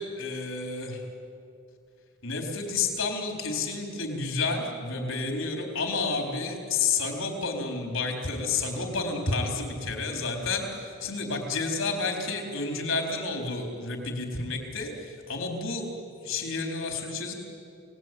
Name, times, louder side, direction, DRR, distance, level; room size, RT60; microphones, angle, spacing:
voice 1, 0.2-1.0 2.2-15.9 16.2-17.3, left 4 dB, 65° left, 3 dB, 4.3 m, -30 dB
28.5 x 19.0 x 9.3 m, 2.4 s
head